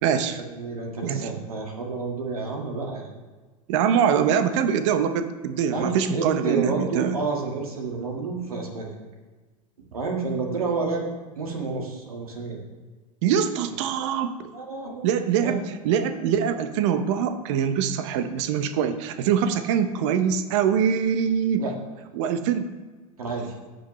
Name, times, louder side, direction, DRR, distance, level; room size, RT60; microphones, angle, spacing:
voice 1, 0.0-0.4 1.0-1.3 3.7-7.2 13.2-14.5 15.0-21.6 22.1-22.7, right 8 dB, 55° right, 10 dB, 0.9 m, -23 dB
voice 2, 0.5-3.1 5.7-8.9 9.9-11.0 11.4-12.6 14.5-15.6 21.6-21.7 23.2-23.5, right 4 dB, 80° right, 1 dB, 1.8 m, -30 dB
15.5 x 5.4 x 3.2 m, 1.3 s
hypercardioid pair, 90°, 19 cm